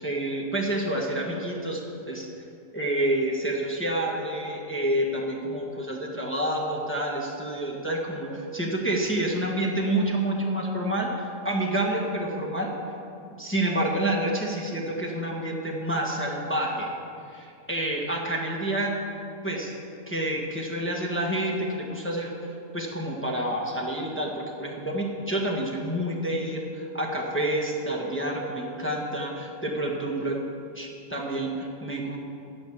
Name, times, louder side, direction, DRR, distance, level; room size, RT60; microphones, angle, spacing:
voice 1, 0.0-1.8 2.1-2.3 2.7-12.7 13.4-16.9 17.3-19.0 19.4-19.7 20.1-22.3 22.7-30.4 30.7-32.2, right 1 dB, 10° left, -2 dB, 1.4 m, -28 dB
14.5 x 5.6 x 8.8 m, 2.5 s
omnidirectional pair, 1.5 m